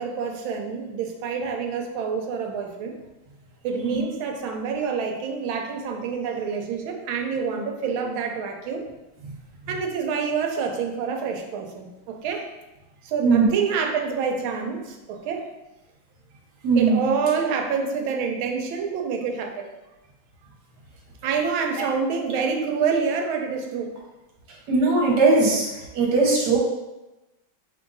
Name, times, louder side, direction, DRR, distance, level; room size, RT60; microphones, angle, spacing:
voice 1, 0.0-2.9 3.6-8.8 9.7-12.5 13.0-15.5 16.8-19.7 21.2-23.9, right 5 dB, 80° right, 3 dB, 1.4 m, -27 dB
voice 2, 16.6-17.1 24.7-26.6, right 3 dB, 60° right, -2 dB, 1.5 m, -19 dB
3.6 x 3.3 x 3.9 m, 1.0 s
omnidirectional pair, 2.2 m